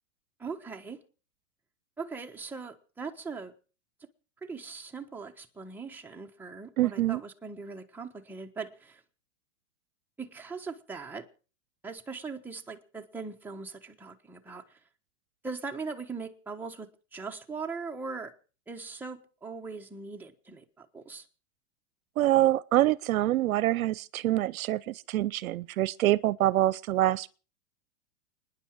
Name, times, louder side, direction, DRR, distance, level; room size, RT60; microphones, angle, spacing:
voice 1, 0.4-1.0 2.0-3.5 4.4-9.0 10.2-11.3 11.8-14.8 15.4-18.3 18.7-21.3, right 4 dB, 5° right, 1.2 m, -40 dB
voice 2, 6.8-7.2 22.2-27.3, right 14 dB, 80° right, 0.7 m, -25 dB
30.0 x 10.0 x 4.7 m
hypercardioid pair, 135°, 41 cm